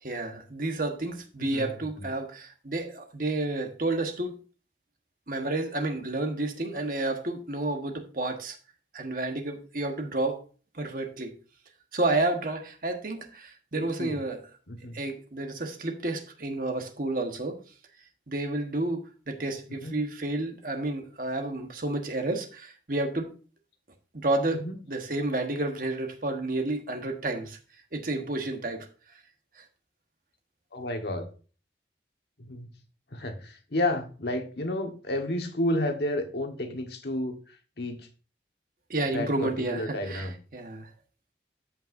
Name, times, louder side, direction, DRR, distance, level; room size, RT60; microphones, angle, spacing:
voice 1, 0.0-4.4 5.3-8.6 8.9-10.4 10.7-11.4 11.9-14.4 14.9-17.6 18.3-23.3 24.1-24.6 24.9-27.6 27.9-28.9 29.6-29.7 38.9-40.3 40.5-40.9, right 2 dB, 50° right, 4 dB, 1.3 m, -30 dB
voice 2, 1.4-2.1 13.7-14.2 14.7-15.0 19.8-19.9 24.5-24.7 30.7-31.3 32.4-32.7 33.1-38.1 39.1-40.3, left 1 dB, 65° left, 5 dB, 1.4 m, -31 dB
13.5 x 5.6 x 2.6 m, 0.37 s
head